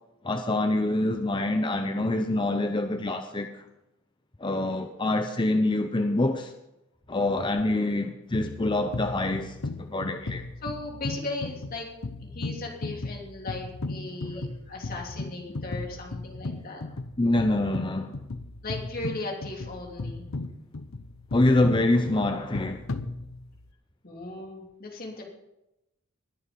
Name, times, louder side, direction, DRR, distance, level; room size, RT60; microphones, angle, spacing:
voice 1, 0.2-3.6 4.4-6.5 7.1-10.5 17.2-18.2 21.3-22.9, left 2 dB, 20° left, 0.6 m, -25 dB
sound 1, 8.3-23.7, left 2 dB, 70° left, 0.8 m, -36 dB
voice 2, 10.6-11.9 12.2-16.8 18.6-20.2 24.0-25.2, left 2 dB, 40° left, 3.1 m, -37 dB
20.5 x 7.1 x 5.2 m
head